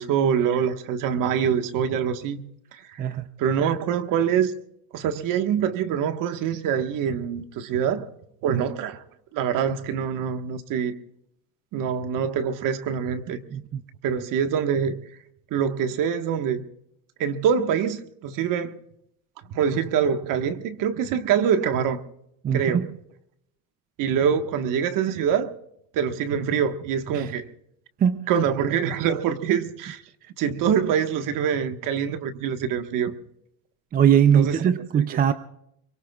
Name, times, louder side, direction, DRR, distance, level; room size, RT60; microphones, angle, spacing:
voice 1, 0.0-2.4 2.7-4.5 4.9-8.1 8.4-9.0 9.3-11.0 11.7-13.4 14.0-15.0 15.5-16.6 17.2-18.8 19.5-22.0 22.5-22.9 24.0-25.5 25.9-27.5 28.3-30.0 30.4-33.1 34.3-34.6 34.9-35.3, right 8 dB, 50° right, 1.5 m, -25 dB
voice 2, 22.4-22.9 27.1-27.3 28.0-28.3 33.9-35.3, right 8 dB, 20° right, 0.6 m, -21 dB
23.5 x 22.5 x 2.4 m
cardioid pair, 140°, 41 cm